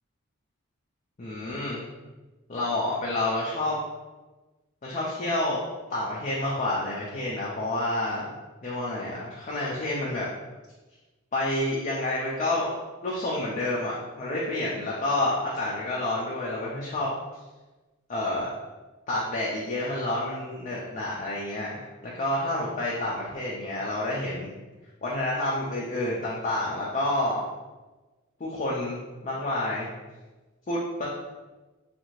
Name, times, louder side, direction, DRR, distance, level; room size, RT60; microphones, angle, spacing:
voice 1, 1.2-1.8 2.5-3.8 4.8-5.6 5.9-8.3 8.6-10.3 11.3-12.7 13.0-17.1 18.1-18.5 19.1-24.5 25.0-27.5 28.4-29.0 29.2-29.9 30.7-31.1, left 1 dB, 35° left, -6 dB, 0.4 m, -29 dB
2.7 x 2.4 x 3.0 m, 1.2 s
head